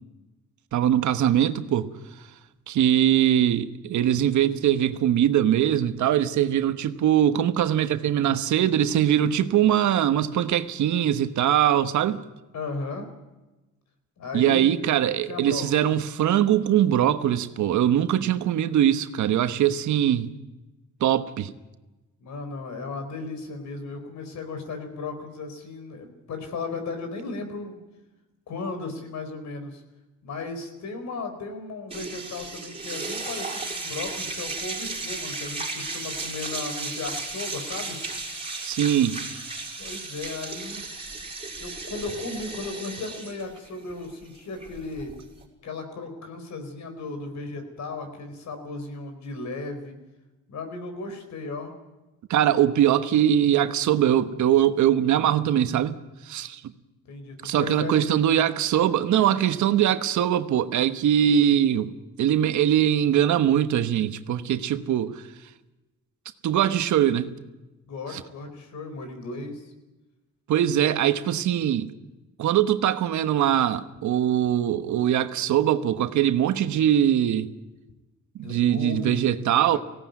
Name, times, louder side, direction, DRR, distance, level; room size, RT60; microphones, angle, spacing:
voice 1, 0.7-1.9 2.7-12.2 14.3-20.3 21.0-21.5 38.6-39.2 52.3-56.0 56.3-56.6 57.4-61.9 62.2-65.2 66.4-67.3 68.1-68.2 70.5-71.9 72.4-77.5 78.4-79.8, right 10 dB, 75° right, 1.2 m, -22 dB
voice 2, 12.5-13.1 14.2-14.8 15.2-15.7 22.2-27.8 28.5-29.8 30.2-38.0 39.8-40.9 41.6-45.1 45.6-49.9 50.5-51.7 57.1-58.1 67.9-69.6 78.4-79.2 79.6-79.8, left 3 dB, 65° left, 4.4 m, -35 dB
sound 1, 31.9-45.4, right 3 dB, 20° right, 6.0 m, -35 dB
18.5 x 17.0 x 9.4 m
cardioid pair, 90°, 30 cm